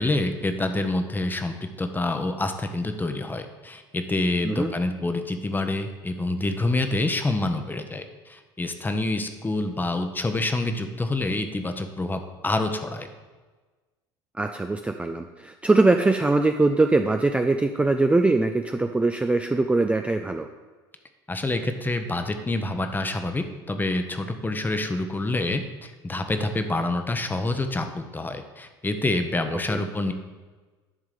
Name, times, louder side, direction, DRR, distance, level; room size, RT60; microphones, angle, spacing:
voice 1, 0.0-13.1 21.3-30.1, left 2 dB, 15° left, 7 dB, 1.0 m, -27 dB
voice 2, 14.4-20.5 29.7-29.8, right 2 dB, 10° right, 6 dB, 0.5 m, -22 dB
11.0 x 3.7 x 6.6 m, 1.3 s
hypercardioid pair, 75°, 12 cm